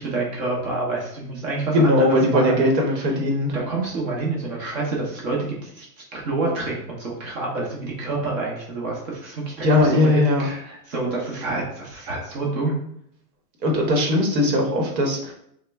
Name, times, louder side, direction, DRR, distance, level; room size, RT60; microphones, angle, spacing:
voice 1, 0.0-2.6 3.5-12.8, right 3 dB, 55° right, -3 dB, 1.1 m, -28 dB
voice 2, 1.7-3.5 9.6-10.5 13.6-15.3, left 1 dB, 80° right, 1 dB, 1.2 m, -19 dB
3.6 x 2.2 x 3.4 m, 0.70 s
supercardioid pair, 160°, 49 cm